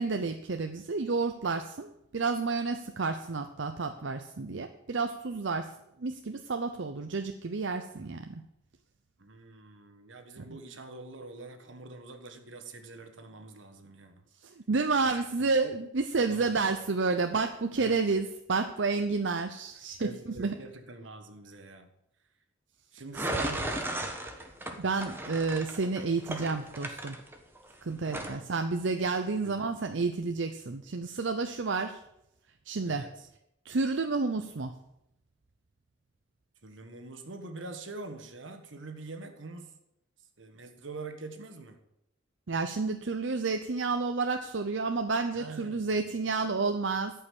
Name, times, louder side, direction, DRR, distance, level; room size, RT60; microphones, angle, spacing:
voice 1, 0.0-5.7 6.0-8.4 10.4-10.5 14.4-20.5 24.8-27.2 27.8-32.0 32.7-33.1 33.6-34.7 42.5-47.1, right 4 dB, 70° right, 7 dB, 0.7 m, -30 dB
voice 2, 9.2-14.2 15.0-15.1 15.4-15.5 16.3-16.6 17.8-18.1 20.0-21.9 22.9-23.9 28.0-28.5 29.3-29.7 32.8-33.3 36.6-39.7 40.4-41.8 45.3-46.1, right 3 dB, 85° right, 7 dB, 1.5 m, -45 dB
sound 1, 23.1-27.7 28.1-28.4, right 1 dB, 10° right, 1.3 m, -35 dB
12.5 x 5.6 x 8.5 m, 0.82 s
head